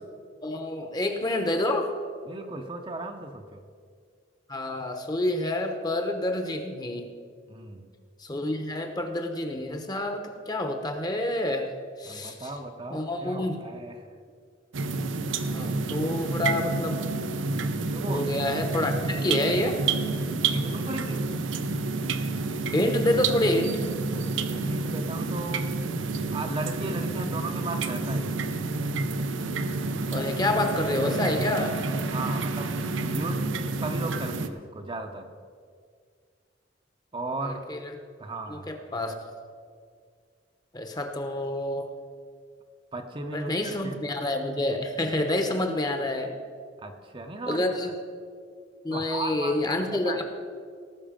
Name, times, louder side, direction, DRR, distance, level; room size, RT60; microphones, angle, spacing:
voice 1, 0.4-1.9 4.5-7.1 8.2-11.7 12.0-12.5 12.9-13.6 15.5-17.0 18.0-19.8 22.7-23.9 30.1-31.8 37.4-37.8 38.5-39.1 40.7-41.9 43.3-46.3 47.5-47.9 48.8-50.2, left 1 dB, 20° left, 6 dB, 0.9 m, -28 dB
voice 2, 2.2-3.7 7.5-7.9 12.0-14.2 17.9-18.3 20.1-21.2 24.4-25.7 26.3-28.3 32.1-32.8 33.0-35.3 37.1-37.6 38.2-38.7 42.9-44.0 46.8-47.8 48.9-50.2, right 2 dB, 30° right, 4 dB, 0.7 m, -36 dB
sound 1, 14.7-34.5, right 3 dB, 90° right, 0.6 m, -29 dB
18.0 x 6.4 x 5.1 m, 2.1 s
head